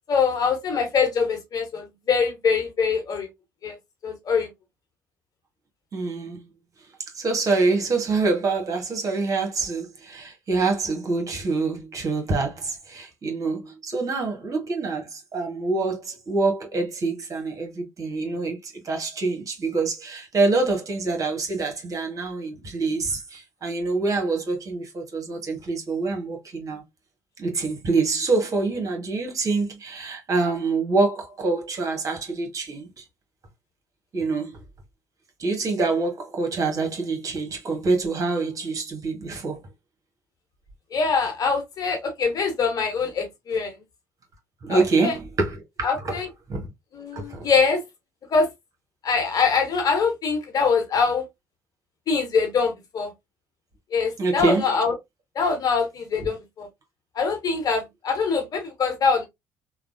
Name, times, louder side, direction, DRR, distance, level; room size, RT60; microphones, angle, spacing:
voice 1, 0.1-3.3 3.6-3.8 4.0-4.5 40.9-43.7 44.7-45.1 45.8-46.3 46.9-47.8 48.3-48.5 49.0-51.2 52.1-53.1 53.9-54.9 55.3-56.7 57.1-59.3, left 5 dB, 50° left, 1.1 m, -23 dB
voice 2, 5.9-6.4 7.1-26.8 27.4-33.0 34.1-34.6 35.4-39.6 44.6-46.2 46.5-46.7 47.1-47.5 54.2-54.7, right 3 dB, 45° right, 1.3 m, -26 dB
3.2 x 2.2 x 2.5 m
hypercardioid pair, 55°, 8 cm